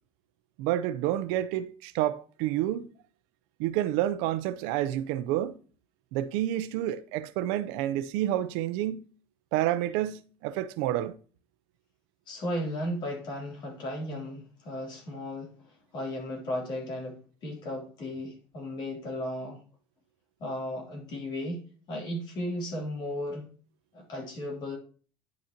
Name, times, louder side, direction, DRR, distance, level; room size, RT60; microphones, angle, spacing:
voice 1, 0.6-2.9 3.6-5.6 6.1-9.1 9.5-11.2, right 13 dB, 85° right, 0.7 m, -29 dB
voice 2, 12.3-19.6 20.4-21.6 21.9-23.5 23.9-24.8, left 1 dB, 50° left, 3.2 m, -35 dB
9.8 x 6.5 x 2.9 m
cardioid pair, 135°, 10 cm